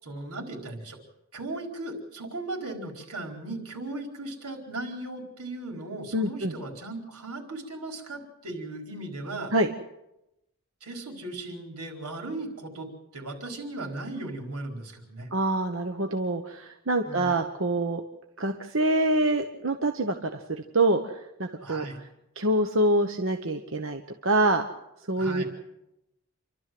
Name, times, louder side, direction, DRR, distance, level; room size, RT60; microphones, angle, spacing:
voice 1, 0.0-1.0 1.3-9.5 10.8-15.3 17.0-17.4 21.6-22.0 25.2-25.5, right 2 dB, 90° right, 2 dB, 4.5 m, -37 dB
voice 2, 6.1-6.5 9.5-9.7 15.3-18.0 18.4-21.1 21.4-21.8 22.4-24.6 25.1-25.4, right 1 dB, 60° right, 5 dB, 1.1 m, -25 dB
28.5 x 12.5 x 7.8 m, 0.89 s
head